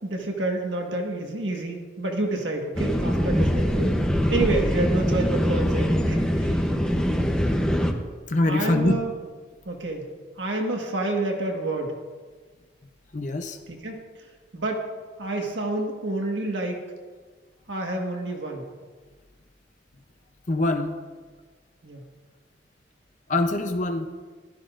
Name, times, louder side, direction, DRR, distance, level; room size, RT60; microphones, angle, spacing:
voice 1, 0.0-4.0 4.3-6.7 8.5-9.1 9.6-10.1 10.4-11.9 13.7-14.9 15.2-16.8 17.7-18.7 21.8-22.0, right 2 dB, 70° right, 1 dB, 1.6 m, -29 dB
sound 1, 2.8-7.9, equal, 5° left, 0.8 m, -23 dB
voice 2, 8.3-9.0 13.1-13.6 20.5-20.9 23.3-24.1, left 2 dB, 40° left, 6 dB, 0.7 m, -23 dB
15.0 x 13.0 x 2.6 m, 1.4 s
head